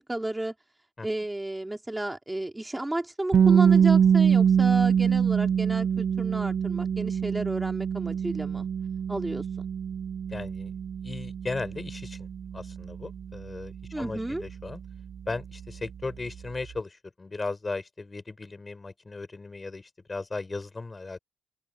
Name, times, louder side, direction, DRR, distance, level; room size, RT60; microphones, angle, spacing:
voice 1, 0.1-0.5 1.0-8.7 9.1-9.7 13.9-14.4, right 1 dB, 10° right, 4.3 m, -32 dB
sound 1, 3.3-15.2, right 7 dB, 50° right, 0.5 m, -24 dB
voice 2, 10.3-10.8 11.0-12.3 12.5-14.8 15.3-21.2, left 3 dB, 25° left, 5.6 m, -36 dB
open air
cardioid pair, 90°, 0 cm